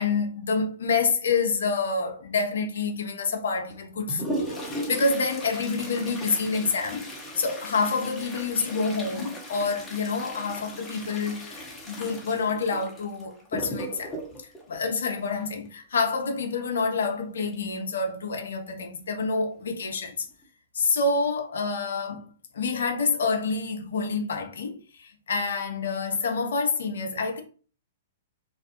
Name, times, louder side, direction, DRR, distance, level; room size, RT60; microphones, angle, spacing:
voice 1, 0.0-7.1 7.4-14.2 14.7-20.3 20.7-22.2 22.5-27.4, left 4 dB, 65° left, 0.5 m, -27 dB
Toilet flush, 3.7-15.7 17.5-17.6 18.0-18.1 18.8-18.9 19.6-19.8 20.3-20.4, equal, 10° left, 0.8 m, -37 dB
2.4 x 2.0 x 2.9 m
figure-of-eight pair, 110°, 0 cm